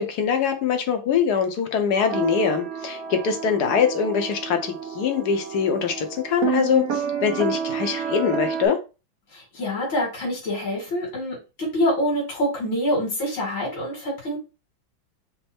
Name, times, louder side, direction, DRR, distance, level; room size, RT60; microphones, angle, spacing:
voice 1, 0.0-8.8, left 7 dB, 65° left, 6 dB, 1.2 m, -23 dB
sound 1, 2.0-8.7, right 6 dB, 55° right, 1.1 m, -30 dB
voice 2, 9.3-14.4, equal, 80° left, -4 dB, 3.0 m, -26 dB
5.4 x 2.1 x 4.3 m, 0.30 s
omnidirectional pair, 2.1 m